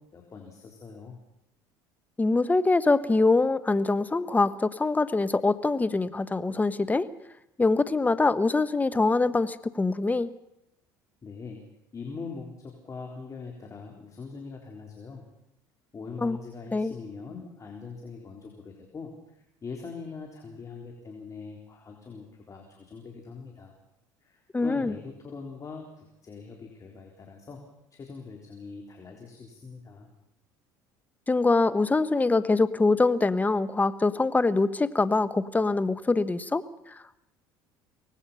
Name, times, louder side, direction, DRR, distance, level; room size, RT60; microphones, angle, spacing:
voice 1, 0.1-1.2 11.2-11.6 11.9-15.2 15.9-23.7 24.2-27.6 27.9-30.1, left 4 dB, 35° left, 1 dB, 3.9 m, -42 dB
voice 2, 2.2-7.1 7.6-10.3 16.2-16.4 16.7-16.9 24.5-24.9 31.3-37.2, left 3 dB, 15° left, 13 dB, 1.2 m, -24 dB
24.5 x 18.5 x 5.7 m, 0.82 s
supercardioid pair, 80°, 10 cm